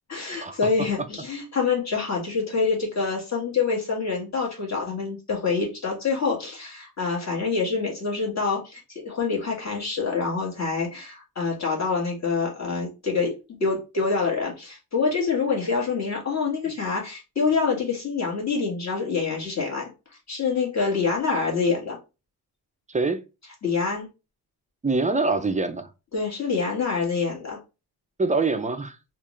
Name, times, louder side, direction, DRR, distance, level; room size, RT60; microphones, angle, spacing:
voice 1, 0.1-19.9 20.3-22.0 23.6-24.1 26.1-27.6, left 4 dB, 40° left, 1.7 m, -26 dB
voice 2, 22.9-23.2 24.8-25.9 28.2-29.0, right 3 dB, 20° right, 0.4 m, -24 dB
3.6 x 2.5 x 3.1 m
cardioid pair, 100°, 40 cm